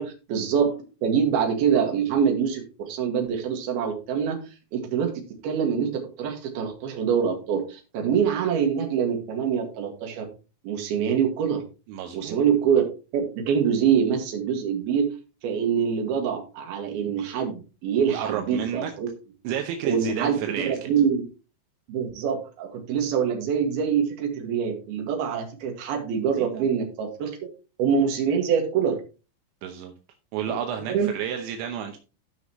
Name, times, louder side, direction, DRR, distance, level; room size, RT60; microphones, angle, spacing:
voice 1, 0.0-4.4 4.7-5.1 5.4-10.3 10.6-11.6 12.1-12.8 13.1-15.1 15.4-19.1 19.8-21.2 21.9-27.3 27.8-29.0 30.5-30.6 30.9-31.1, right 7 dB, 60° right, 2 dB, 3.7 m, -25 dB
voice 2, 11.9-12.4 18.1-18.9 19.4-20.8 26.4-26.7 29.6-29.9 30.3-32.0, right 9 dB, 80° right, 4 dB, 3.2 m, -31 dB
16.0 x 5.7 x 3.1 m, 0.32 s
omnidirectional pair, 5.4 m